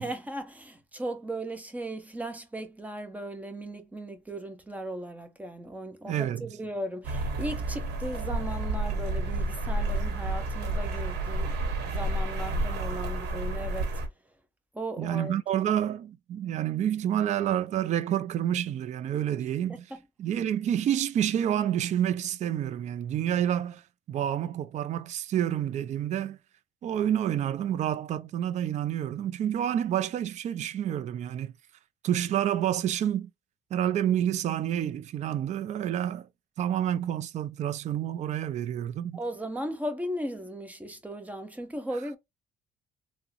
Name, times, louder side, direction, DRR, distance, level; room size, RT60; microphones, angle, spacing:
voice 1, 0.0-14.0 14.7-15.4 19.7-20.0 39.1-42.2, right 1 dB, 10° right, 0.8 m, -37 dB
voice 2, 6.0-6.5 15.0-19.9 20.2-23.8 24.1-26.4 26.8-31.5 32.0-33.3 33.7-36.3 36.6-39.2, right 10 dB, 45° right, 0.4 m, -28 dB
sound 1, 7.0-14.1, right 2 dB, 80° right, 1.0 m, -30 dB
3.6 x 2.1 x 2.8 m
cardioid pair, 110°, 17 cm